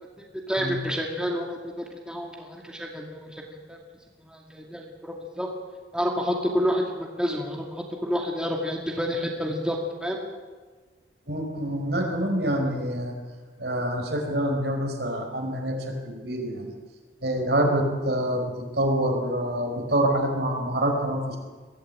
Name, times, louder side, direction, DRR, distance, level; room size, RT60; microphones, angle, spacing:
voice 1, 0.5-1.7 2.1-3.8 4.2-5.5 5.9-10.2, equal, 5° right, -1 dB, 2.4 m, -29 dB
voice 2, 11.3-13.1 13.6-16.7 17.2-21.4, right 1 dB, 65° right, 2 dB, 5.2 m, -26 dB
23.0 x 16.5 x 8.8 m, 1.4 s
head